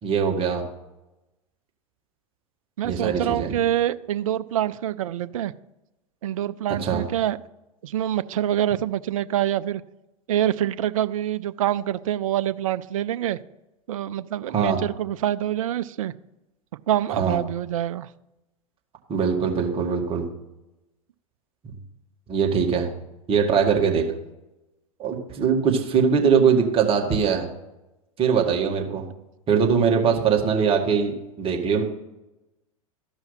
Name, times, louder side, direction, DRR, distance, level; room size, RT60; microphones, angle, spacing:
voice 1, 0.0-0.7 2.8-3.5 6.8-7.0 14.5-14.8 17.1-17.4 19.1-20.3 22.3-22.9 23.3-24.0 25.0-27.5 28.2-29.0 29.5-31.8, right 6 dB, 30° right, 2.0 m, -21 dB
voice 2, 2.8-5.5 6.2-7.4 7.8-9.8 10.3-13.4 13.9-16.1 16.9-18.1, right 11 dB, 65° right, 0.5 m, -25 dB
14.0 x 5.6 x 5.8 m
hypercardioid pair, 95°, 18 cm